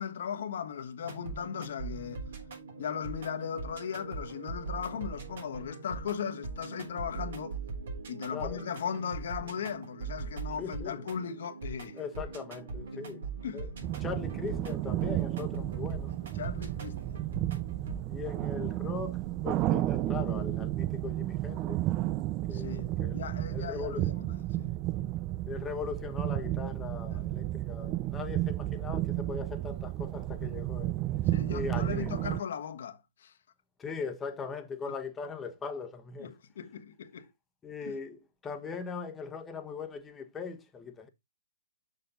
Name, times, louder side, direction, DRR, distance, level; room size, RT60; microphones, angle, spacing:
voice 1, 0.0-2.2 2.8-7.6 8.1-12.0 12.9-13.0 13.4-13.6 16.3-17.2 22.5-24.8 27.1-27.2 31.3-33.3 34.9-35.0 36.2-37.3 37.8-37.9, left 8 dB, 60° left, 1.3 m, -38 dB
sound 1, 1.0-18.0, right 4 dB, 65° right, 3.8 m, -41 dB
voice 2, 8.3-8.7 10.6-11.0 11.9-13.3 13.5-13.7 14.0-16.1 18.1-21.9 22.5-23.2 23.5-24.1 25.5-31.0 31.5-32.1 33.8-36.3 37.6-41.1, left 5 dB, 15° left, 1.2 m, -40 dB
sound 2, 13.8-32.4, right 15 dB, 30° right, 0.5 m, -32 dB
6.7 x 6.5 x 4.0 m
hypercardioid pair, 130°, 0 cm